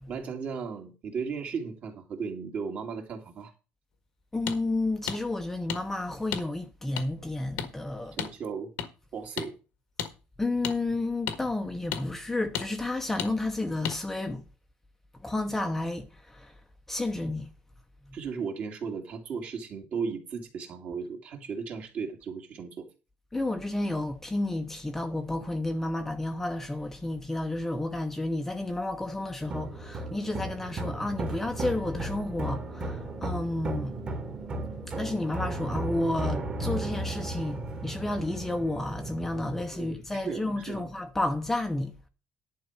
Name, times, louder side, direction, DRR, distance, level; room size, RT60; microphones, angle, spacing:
voice 1, 0.1-3.5 8.1-8.7 9.1-9.5 18.1-22.9 39.7-40.9, right 5 dB, 45° right, 2.5 m, -36 dB
voice 2, 4.3-8.2 10.4-14.4 15.2-16.5 16.9-17.5 18.1-18.2 23.3-33.9 34.8-42.0, left 2 dB, 10° left, 0.9 m, -31 dB
sound 1, 4.5-4.6 5.1-5.2 5.7-5.8 6.3-6.4 7.0-7.1 7.6-7.7 8.2-8.3 8.8-8.9 9.4-9.5 10.0-10.1 10.6-10.8 11.3-11.4 11.9-12.0 12.5-12.7 13.2-13.3 13.8-14.0, left 9 dB, 85° left, 1.7 m, -32 dB
sound 2, 29.4-39.7, right 2 dB, 30° right, 2.0 m, -35 dB
11.0 x 4.6 x 8.1 m
cardioid pair, 155°, 4 cm